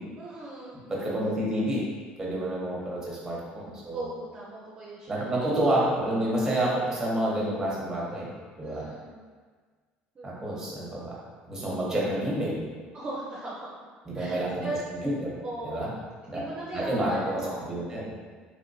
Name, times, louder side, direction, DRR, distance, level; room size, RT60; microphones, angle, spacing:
voice 1, 0.2-0.8 3.9-5.3 8.6-9.2 10.1-10.3 12.9-13.7 14.1-14.8 15.4-17.7, right 2 dB, 30° right, -7 dB, 0.6 m, -38 dB
voice 2, 0.9-1.8 2.2-4.1 5.1-8.3 8.6-8.9 10.2-12.6 14.1-14.7 15.0-15.4 15.6-15.9 16.3-16.5 16.7-18.1, right 1 dB, 15° right, -5 dB, 1.0 m, -29 dB
3.1 x 2.9 x 2.7 m, 1.5 s
cardioid pair, 105°, 4 cm